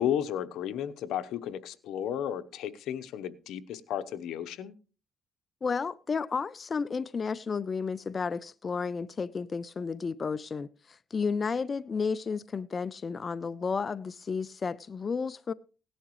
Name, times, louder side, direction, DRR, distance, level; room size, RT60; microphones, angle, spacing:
voice 1, 0.0-4.7, left 10 dB, 85° left, 0.9 m, -33 dB
voice 2, 5.6-15.5, left 5 dB, 40° left, 0.5 m, -32 dB
17.5 x 11.0 x 3.1 m
cardioid pair, 90°, 0 cm